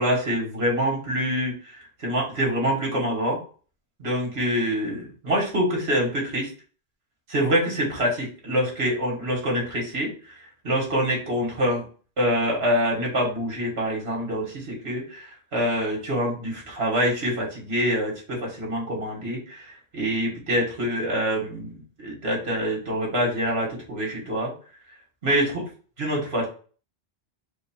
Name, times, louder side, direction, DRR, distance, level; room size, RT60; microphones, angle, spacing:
voice 1, 0.0-3.4 4.0-6.5 7.3-11.8 12.2-24.5 25.2-25.6 26.0-26.5, equal, 70° right, -2 dB, 2.0 m, -26 dB
4.5 x 2.3 x 4.5 m, 0.40 s
omnidirectional pair, 1.1 m